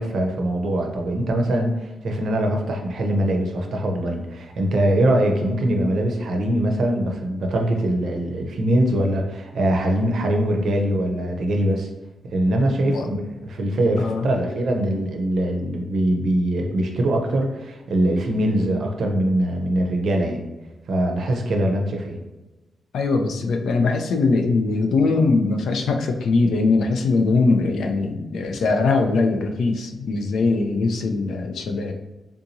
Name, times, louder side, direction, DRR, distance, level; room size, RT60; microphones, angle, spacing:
voice 1, 0.0-11.9 12.3-20.4 20.9-22.2, right 1 dB, 60° right, 2 dB, 0.5 m, -22 dB
voice 2, 12.8-13.1 14.0-14.3 22.9-31.9, left 3 dB, 80° left, 4 dB, 0.4 m, -21 dB
3.5 x 2.8 x 2.6 m, 1.1 s
wide cardioid pair, 175°, 0 cm